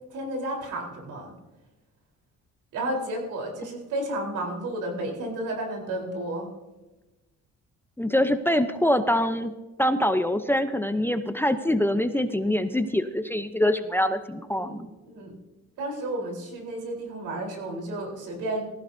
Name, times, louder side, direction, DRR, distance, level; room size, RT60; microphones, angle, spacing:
voice 1, 0.1-1.4 2.7-6.5 14.5-15.3 15.8-18.6, right 1 dB, 85° right, 0 dB, 4.0 m, -32 dB
voice 2, 8.0-9.5 9.8-14.8, left 1 dB, 5° left, 9 dB, 0.7 m, -24 dB
19.0 x 15.0 x 2.7 m, 1.1 s
cardioid pair, 90°, 30 cm